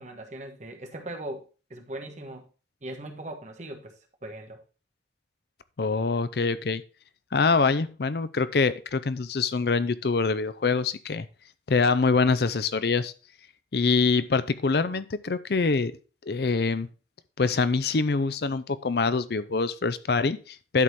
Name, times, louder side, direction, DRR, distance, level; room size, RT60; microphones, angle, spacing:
voice 1, 0.0-2.5 2.8-3.9 4.2-4.6, right 1 dB, 40° right, 1.2 m, -39 dB
voice 2, 5.8-6.8 7.3-11.3 11.7-13.1 13.7-15.9 16.3-16.9 17.4-20.8, left 4 dB, 55° left, 0.5 m, -24 dB
11.0 x 4.2 x 4.6 m
head